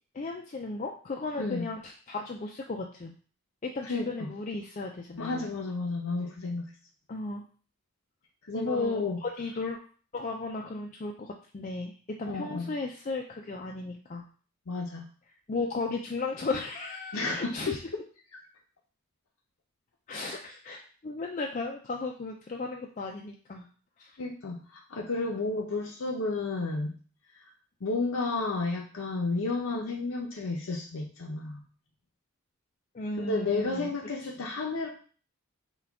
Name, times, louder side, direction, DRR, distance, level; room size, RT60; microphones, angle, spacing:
voice 1, 0.1-3.1 3.6-5.5 7.1-7.4 8.5-9.8 10.1-14.3 15.5-17.8 20.1-23.7 24.0-24.2 32.9-33.9, left 3 dB, 35° left, 1 dB, 0.4 m, -35 dB
voice 2, 3.8-4.3 5.2-6.7 8.4-9.2 12.3-12.7 14.7-15.0 17.1-18.0 18.3-18.4 24.2-26.9 27.3-27.4 27.8-31.6 33.2-34.9, left 3 dB, 75° left, -1 dB, 0.6 m, -32 dB
5.7 x 2.3 x 3.5 m, 0.41 s
head